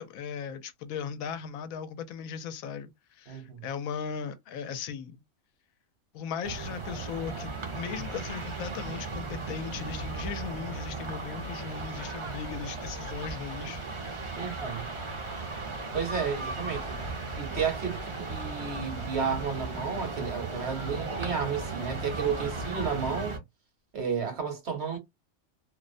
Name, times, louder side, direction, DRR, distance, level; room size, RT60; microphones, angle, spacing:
voice 1, 0.0-5.2 6.1-13.8, left 7 dB, 80° left, 1.0 m, -38 dB
voice 2, 3.3-3.6 14.4-14.9 15.9-17.0 17.4-23.4 23.9-25.0, right 6 dB, 55° right, 1.0 m, -32 dB
sound 1, 6.4-23.4, right 3 dB, 30° right, 0.6 m, -36 dB
2.6 x 2.0 x 2.5 m
omnidirectional pair, 1.5 m